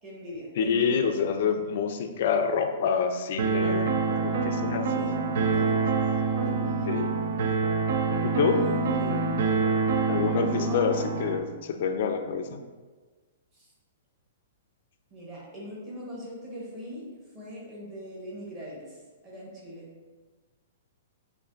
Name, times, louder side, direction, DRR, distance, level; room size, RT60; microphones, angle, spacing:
voice 1, 0.0-1.1 5.0-5.2 5.5-5.7 6.4-6.9 8.5-9.2 10.3-10.8 13.5-13.7 15.1-17.1 17.3-19.9, equal, 20° right, -5 dB, 1.0 m, -41 dB
voice 2, 0.6-4.9 6.9-7.1 8.2-8.7 10.1-12.6, left 6 dB, 45° left, 6 dB, 0.4 m, -27 dB
sound 1, 3.4-11.4, right 4 dB, 55° right, 0.4 m, -26 dB
6.7 x 2.5 x 2.4 m, 1.3 s
hypercardioid pair, 175°, 0 cm